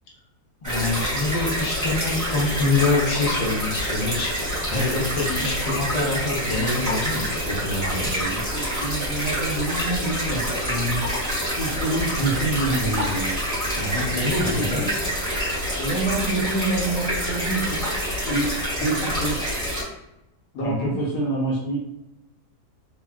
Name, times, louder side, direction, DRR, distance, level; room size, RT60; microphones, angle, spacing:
voice 1, 0.6-4.3 4.7-8.1 13.7-14.9 20.6-21.0, left 3 dB, 50° left, -3 dB, 0.4 m, -25 dB
sound 1, 0.6-19.8, equal, 15° right, 0.9 m, -27 dB
voice 2, 8.1-11.1 11.5-13.4 14.4-14.5 14.8-14.9 15.8-17.8 18.2-19.4 20.5-21.8, right 2 dB, 75° left, -7 dB, 1.3 m, -27 dB
3.1 x 2.2 x 2.3 m, 0.88 s
omnidirectional pair, 1.7 m